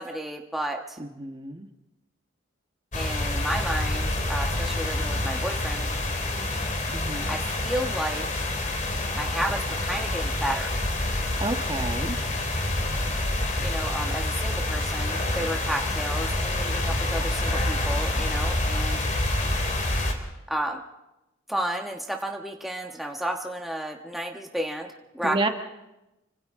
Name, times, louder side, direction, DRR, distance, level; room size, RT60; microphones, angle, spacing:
voice 1, 0.0-1.0 2.9-5.9 7.3-8.3 9.1-10.7 13.6-19.0 20.5-20.8 21.5-24.9 25.1-25.5, right 1 dB, ahead, 1 dB, 1.2 m, -32 dB
voice 2, 1.0-1.7 6.9-7.4 11.4-12.2 25.2-25.5, right 2 dB, 25° right, 4 dB, 1.3 m, -30 dB
sound 1, 2.9-20.1, left 1 dB, 35° left, 2.7 m, -27 dB
29.5 x 25.5 x 3.7 m, 0.98 s
head